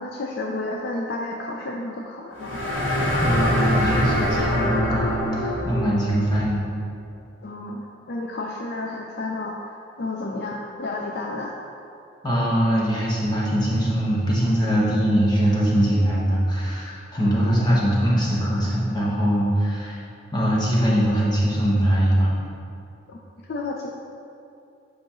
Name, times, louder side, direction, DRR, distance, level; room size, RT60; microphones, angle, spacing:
voice 1, 0.0-2.6 7.4-11.6 17.2-17.4 23.1-23.2 23.4-23.9, left 2 dB, 55° left, 0 dB, 0.4 m, -31 dB
sound 1, 2.4-6.1, equal, 70° left, 1.0 m, -24 dB
voice 2, 3.2-6.6 12.2-20.0 20.3-22.3, equal, 20° left, -6 dB, 1.2 m, -22 dB
7.7 x 4.9 x 3.0 m, 2.6 s
head